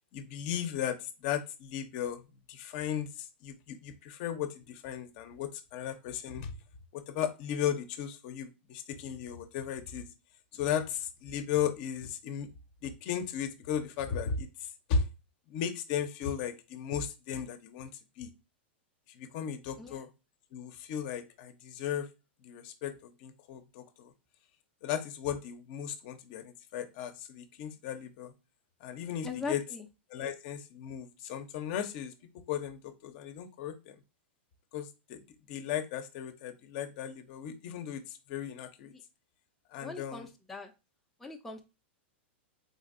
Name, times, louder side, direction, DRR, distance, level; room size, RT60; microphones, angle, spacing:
voice 1, 0.0-6.5 6.9-10.1 10.5-12.5 12.8-15.1 15.5-17.9 18.2-18.3 19.1-20.1 20.5-22.1 22.4-24.1 24.8-28.3 28.8-29.6 30.1-32.1 32.5-34.0 34.7-38.9 39.7-40.3, left 8 dB, 50° left, 8 dB, 0.6 m, -36 dB
voice 2, 29.2-29.9 38.9-39.0 39.8-40.7 41.2-41.6, left 4 dB, 5° left, 2 dB, 0.5 m, -40 dB
3.9 x 2.5 x 2.5 m, 0.27 s
hypercardioid pair, 130°, 6 cm